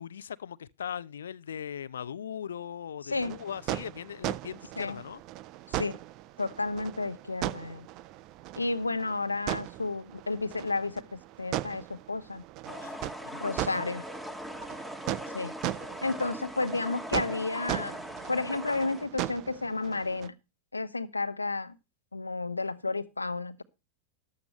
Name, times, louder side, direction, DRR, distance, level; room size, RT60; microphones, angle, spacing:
voice 1, 0.0-5.2 12.7-13.5, left 8 dB, 65° left, 0.6 m, -39 dB
sound 1, 3.1-20.3, right 15 dB, 40° right, 0.6 m, -38 dB
voice 2, 6.4-7.9 8.6-12.4 13.4-14.0 15.3-15.5 16.0-18.0 18.3-20.3 20.7-21.7 22.1-23.6, left 3 dB, 80° left, 1.0 m, -32 dB
sound 2, 12.6-19.0, equal, 5° right, 1.9 m, -40 dB
14.0 x 12.0 x 3.1 m
figure-of-eight pair, 90°, 0 cm